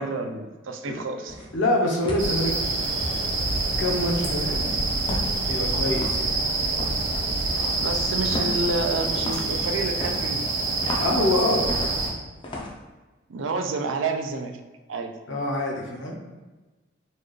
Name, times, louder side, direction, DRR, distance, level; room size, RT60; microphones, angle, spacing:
voice 1, 0.0-1.5 7.8-10.7 13.3-14.5 14.9-15.1, right 3 dB, 75° right, 6 dB, 0.4 m, -29 dB
sound 1, 1.3-1.6 2.0-2.4 3.0-3.2 5.1-5.4 5.9-6.2 6.7-7.0 7.5-7.8 8.3-8.6 9.1-9.5 10.0-11.2 11.7-12.1 12.4-12.7, left 1 dB, 25° left, 0.4 m, -33 dB
voice 2, 1.5-2.9 3.8-6.4 11.0-11.7 15.3-16.1, left 1 dB, 70° left, -1 dB, 0.8 m, -26 dB
sound 2, 2.2-12.1, right 2 dB, 60° right, 1.0 m, -26 dB
4.4 x 2.3 x 3.1 m, 1.2 s
head